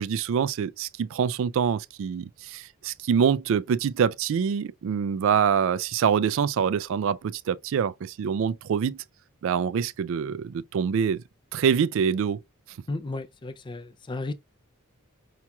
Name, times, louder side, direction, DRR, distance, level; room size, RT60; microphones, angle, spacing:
voice 1, 0.0-9.0 9.4-11.2 11.5-12.4, right 7 dB, 60° right, 0.3 m, -25 dB
voice 2, 12.9-14.3, left 2 dB, 20° left, 0.4 m, -34 dB
5.7 x 2.9 x 2.3 m
head